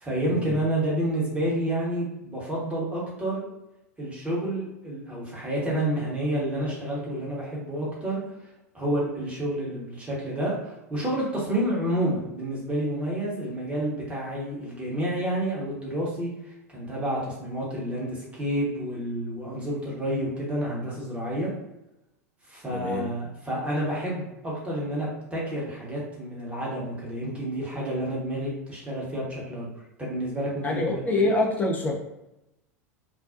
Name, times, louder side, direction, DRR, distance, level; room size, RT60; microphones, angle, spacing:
voice 1, 0.0-3.4 4.0-8.2 8.7-16.3 16.7-21.5 22.5-29.7 30.0-31.2, right 1 dB, 15° right, -5 dB, 1.0 m, -29 dB
voice 2, 22.7-23.1 30.6-31.9, left 2 dB, 20° left, -1 dB, 0.6 m, -25 dB
2.4 x 2.2 x 2.5 m, 0.91 s
figure-of-eight pair, 80°, 9 cm